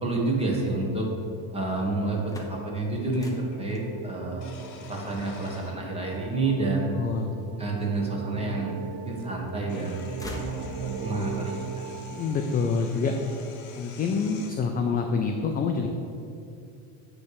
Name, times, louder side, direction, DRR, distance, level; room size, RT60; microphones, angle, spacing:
voice 1, 0.0-1.1 1.5-4.5 4.9-6.9 7.6-10.1 10.3-11.8, right 2 dB, 15° right, -1 dB, 1.4 m, -29 dB
sound 1, 1.4-1.5 3.1-3.7 4.4-6.2 7.1-7.2 8.7-8.8 9.1-14.5, left 4 dB, 45° left, 1.0 m, -47 dB
sound 2, 2.2-8.0 8.5-9.3 9.6-11.2, left 2 dB, 10° left, 0.7 m, -44 dB
sound 3, 2.6-13.0, right 6 dB, 35° right, 0.8 m, -39 dB
voice 2, 7.0-7.3 12.1-13.1 13.7-15.9, left 5 dB, 25° left, 4 dB, 0.3 m, -26 dB
9.3 x 3.3 x 6.7 m, 2.6 s
cardioid pair, 135°, 40 cm